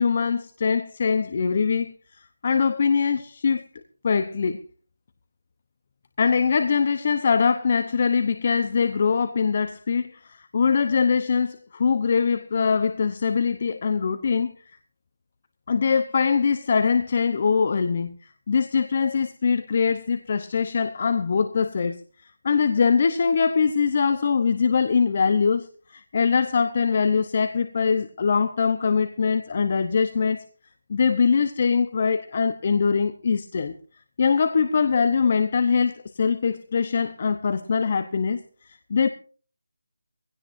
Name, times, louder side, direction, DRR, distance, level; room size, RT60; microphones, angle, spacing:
voice 1, 0.0-1.9 2.4-3.6 4.0-4.6 6.2-14.5 15.7-18.2 18.5-22.0 22.4-30.4 30.9-33.7 34.2-38.4 38.9-39.1, left 5 dB, 35° left, 0.9 m, -22 dB
22.0 x 16.5 x 2.6 m
figure-of-eight pair, 170°, 0 cm